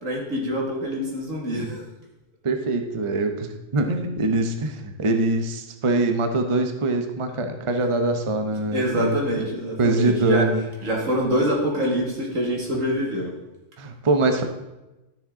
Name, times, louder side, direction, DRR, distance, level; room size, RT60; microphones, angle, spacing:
voice 1, 0.0-1.8 8.7-10.5 10.8-13.3, equal, 80° right, -1 dB, 2.5 m, -25 dB
voice 2, 2.4-9.2 9.8-10.7 13.8-14.4, right 2 dB, 30° right, 5 dB, 0.7 m, -23 dB
12.5 x 6.8 x 3.8 m, 1.0 s
omnidirectional pair, 1.3 m